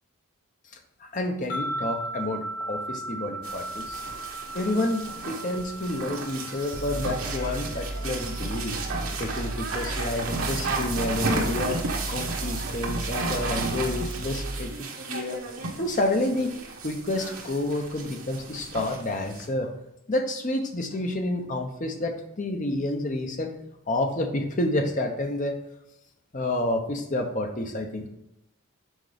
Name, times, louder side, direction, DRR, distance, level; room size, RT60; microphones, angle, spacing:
voice 1, 1.0-4.0 4.5-8.8 9.2-11.8 12.1-15.4 15.8-16.5 16.8-19.7 20.1-23.5 23.9-25.6 26.3-28.1, left 1 dB, 35° left, 5 dB, 0.8 m, -29 dB
sound 1, 1.5-10.8, right 1 dB, 85° left, 1.9 m, -38 dB
sound 2, 3.4-19.5, right 3 dB, 75° right, 1.2 m, -33 dB
sound 3, 6.7-14.7, right 1 dB, 50° right, 0.9 m, -35 dB
6.4 x 4.4 x 5.0 m, 0.89 s
head